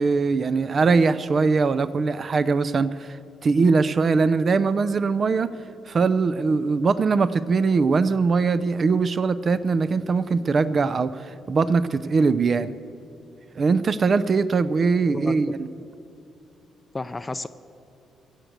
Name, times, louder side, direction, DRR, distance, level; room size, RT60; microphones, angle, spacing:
voice 1, 0.0-3.2 3.4-5.5 5.9-12.7 13.6-15.7, right 4 dB, 40° right, 15 dB, 0.4 m, -21 dB
voice 2, 15.1-15.6 16.9-17.5, left 2 dB, 20° left, 13 dB, 0.4 m, -32 dB
15.0 x 8.1 x 8.0 m, 2.8 s
cardioid pair, 90°, 0 cm